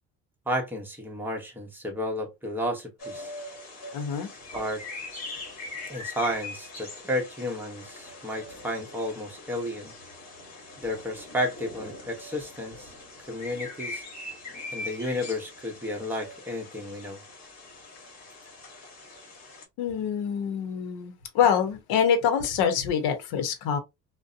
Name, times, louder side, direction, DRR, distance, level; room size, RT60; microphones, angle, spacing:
voice 1, 0.5-3.3 4.5-4.8 5.9-9.9 10.8-12.9 13.3-14.0 14.7-17.2, left 1 dB, 5° right, 0.8 m, -32 dB
sound 1, 3.0-19.6, left 2 dB, 45° left, 1.1 m, -42 dB
voice 2, 3.9-4.3 19.8-23.8, left 7 dB, 80° left, 0.8 m, -25 dB
2.6 x 2.1 x 2.4 m
cardioid pair, 130°, 36 cm